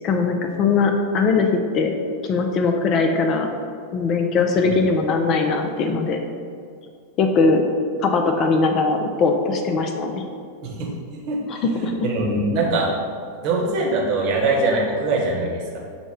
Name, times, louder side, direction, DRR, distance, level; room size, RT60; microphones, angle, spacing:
voice 1, 0.0-1.9 2.2-3.5 3.9-6.2 7.2-7.6 8.0-10.2 11.5-11.9, left 4 dB, 35° left, 4 dB, 0.3 m, -20 dB
voice 2, 11.7-12.9 13.4-15.8, right 2 dB, 45° right, -2 dB, 0.9 m, -22 dB
5.9 x 2.1 x 3.5 m, 2.2 s
figure-of-eight pair, 90°, 0 cm